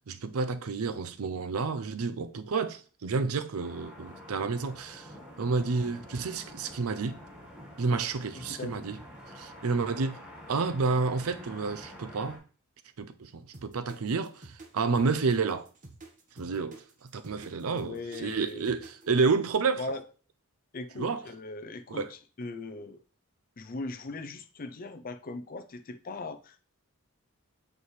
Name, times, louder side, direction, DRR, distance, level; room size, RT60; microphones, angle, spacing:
voice 1, 0.1-5.1 5.4-7.2 7.8-9.0 9.4-10.2 10.5-12.4 13.0-15.7 16.4-16.8 17.1-19.8 21.0-21.2 21.9-22.1, right 4 dB, 75° right, 0.5 m, -30 dB
sound 1, 3.6-12.4, equal, 5° right, 1.6 m, -48 dB
voice 2, 8.3-8.8 17.6-18.8 19.8-20.0 20.7-23.0 23.6-26.6, left 2 dB, 40° left, 0.5 m, -39 dB
sound 2, 13.5-19.2, right 2 dB, 35° right, 1.1 m, -49 dB
8.2 x 4.7 x 3.2 m
head